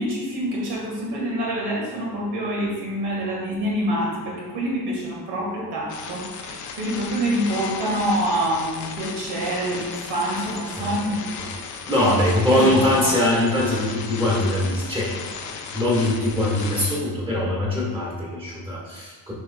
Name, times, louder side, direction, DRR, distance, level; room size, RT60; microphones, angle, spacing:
voice 1, 0.0-11.2 12.0-12.1 12.5-13.1, right 1 dB, 70° right, -4 dB, 1.9 m, -26 dB
sound 1, 5.9-17.0, left 6 dB, 45° left, 0.6 m, -35 dB
voice 2, 11.9-15.1 15.7-19.3, left 1 dB, 15° right, -4 dB, 1.8 m, -22 dB
9.6 x 5.5 x 2.3 m, 1.4 s
cardioid pair, 175°, 41 cm